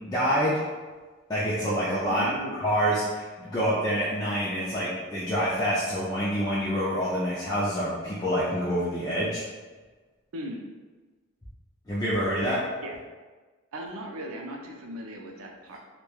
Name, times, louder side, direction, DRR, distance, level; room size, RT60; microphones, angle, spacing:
voice 1, 0.1-0.6 1.3-2.3 2.6-9.4 11.9-12.6, equal, 20° left, -9 dB, 0.4 m, -27 dB
voice 2, 2.1-2.6 10.3-10.7 12.8-12.9 13.7-15.8, equal, 75° right, 1 dB, 0.4 m, -37 dB
3.0 x 2.2 x 2.3 m, 1.3 s
head